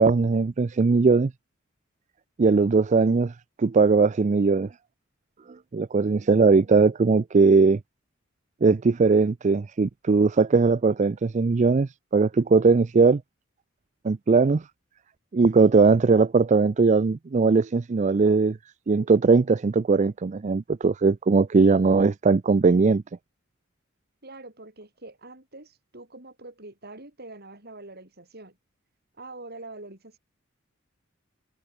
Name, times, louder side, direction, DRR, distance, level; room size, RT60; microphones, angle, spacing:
voice 1, 0.0-1.3 2.4-3.3 3.6-4.7 5.7-7.8 8.6-13.2 14.0-14.6 15.3-18.6 18.9-23.0, right 4 dB, 35° right, 0.4 m, -20 dB
voice 2, 24.2-28.6 29.1-30.2, right 2 dB, 50° right, 7.6 m, -44 dB
head